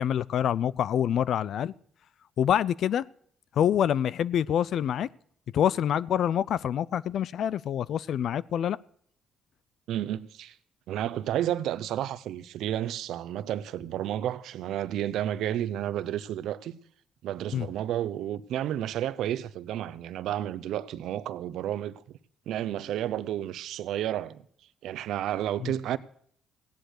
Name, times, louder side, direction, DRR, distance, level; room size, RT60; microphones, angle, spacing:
voice 1, 0.0-1.7 2.4-3.0 3.6-5.1 5.5-8.8 17.5-17.7 25.6-25.7, left 9 dB, 70° left, 0.5 m, -26 dB
voice 2, 9.9-10.6 10.9-16.8 17.2-22.0 22.5-24.4 24.8-26.0, right 11 dB, 80° right, 0.8 m, -31 dB
16.5 x 10.5 x 6.5 m
cardioid pair, 90°, 0 cm